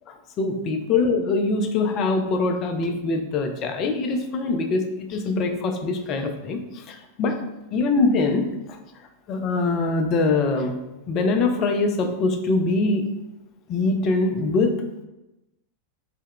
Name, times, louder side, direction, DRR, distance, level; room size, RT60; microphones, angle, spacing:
voice 1, 0.1-7.4 7.7-8.8 9.3-10.8 11.1-13.1 13.7-14.7, left 3 dB, 35° left, 5 dB, 0.3 m, -23 dB
2.1 x 2.0 x 3.6 m, 0.97 s
figure-of-eight pair, 90°, 0 cm